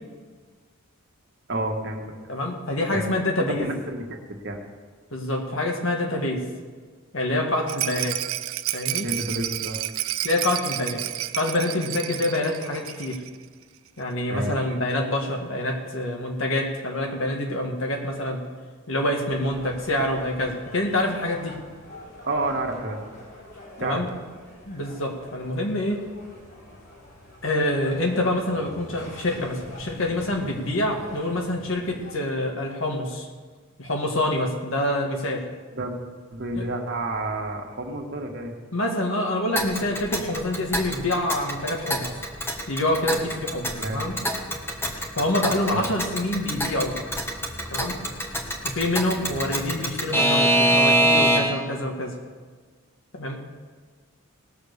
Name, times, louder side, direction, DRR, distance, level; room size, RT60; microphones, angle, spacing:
voice 1, 1.5-2.1 2.9-3.1 3.4-4.6 9.0-9.8 14.3-14.8 22.3-23.0 23.8-24.0 35.7-36.0 36.3-38.5 43.7-44.1 45.7-45.8, right 2 dB, 55° right, 1 dB, 1.7 m, -30 dB
voice 2, 2.3-3.7 5.1-6.4 7.1-8.2 8.7-9.1 10.2-11.0 11.3-13.2 14.0-18.4 18.9-21.6 23.8-24.1 24.7-26.0 27.4-33.3 33.8-35.4 36.6-36.7 38.7-42.1 42.7-44.1 45.2-46.9 47.7-48.0 48.6-52.1 53.1-53.4, left 1 dB, 70° left, 1 dB, 1.9 m, -26 dB
Rattle, 7.7-13.4 13.6-13.7 14.0-14.1, right 14 dB, 80° right, 0.5 m, -31 dB
sound 1, 19.3-32.1, left 1 dB, 50° left, 4.1 m, -45 dB
Alarm / Clock, 39.6-51.7, right 1 dB, 10° left, 1.2 m, -25 dB
18.5 x 6.6 x 6.7 m, 1.5 s
head